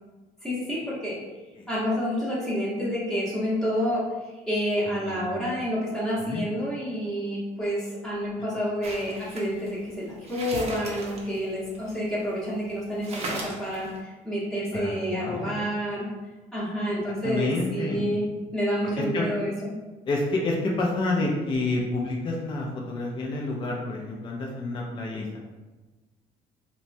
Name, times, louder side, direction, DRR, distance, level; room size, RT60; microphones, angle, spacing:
voice 1, 0.4-1.2 1.7-16.1 16.5-18.2 18.5-19.7, equal, ahead, -9 dB, 0.9 m, -29 dB
voice 2, 5.0-5.4 6.3-6.4 14.7-15.5 17.2-18.1 19.0-19.3 20.1-25.4, left 2 dB, 30° left, -1 dB, 0.4 m, -29 dB
sound 1, 8.8-12.3 12.7-12.8 13.0-14.0, right 2 dB, 40° right, 0.6 m, -37 dB
2.9 x 2.1 x 2.6 m, 1.2 s
cardioid pair, 110°, 17 cm